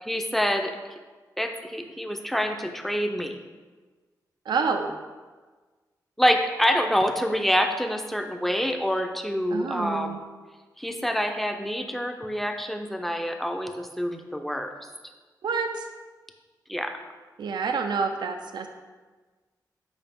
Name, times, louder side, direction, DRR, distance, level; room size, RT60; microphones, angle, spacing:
voice 1, 0.0-0.7 1.4-3.4 6.2-10.2 10.8-14.7 16.7-16.9, equal, 5° left, 5 dB, 0.6 m, -26 dB
voice 2, 4.5-4.9 9.5-10.2 15.4-15.9 17.4-18.7, right 5 dB, 80° right, 5 dB, 0.5 m, -28 dB
9.0 x 5.1 x 3.6 m, 1.4 s
wide cardioid pair, 130°, 7 cm